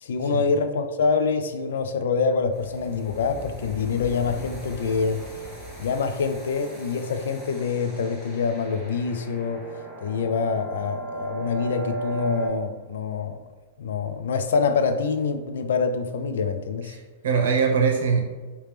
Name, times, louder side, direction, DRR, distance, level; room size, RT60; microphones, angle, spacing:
voice 1, 0.0-5.3 5.8-9.7 10.0-13.4 13.8-16.9, left 5 dB, 85° left, 9 dB, 0.3 m, -25 dB
sound 1, 2.5-12.5, right 2 dB, 10° left, 0.9 m, -37 dB
voice 2, 16.9-18.2, right 5 dB, 80° right, 1 dB, 0.7 m, -22 dB
3.3 x 2.9 x 3.2 m, 1.4 s
supercardioid pair, 175°, 0 cm